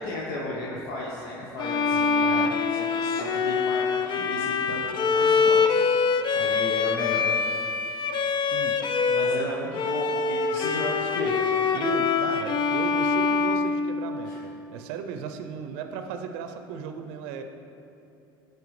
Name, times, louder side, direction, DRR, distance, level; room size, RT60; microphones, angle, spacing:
voice 1, 0.0-5.9 6.3-7.3 7.6-8.1 9.0-11.3 14.3-14.4, left 2 dB, 75° left, -5 dB, 1.1 m, -35 dB
Bowed string instrument, 1.6-9.5 9.7-14.5, left 5 dB, 40° left, 0.5 m, -24 dB
voice 2, 1.9-2.5 8.5-8.8 9.2-9.5 11.7-17.4, right 6 dB, 70° right, 7 dB, 0.6 m, -36 dB
13.0 x 4.6 x 3.2 m, 2.7 s
hypercardioid pair, 80°, 12 cm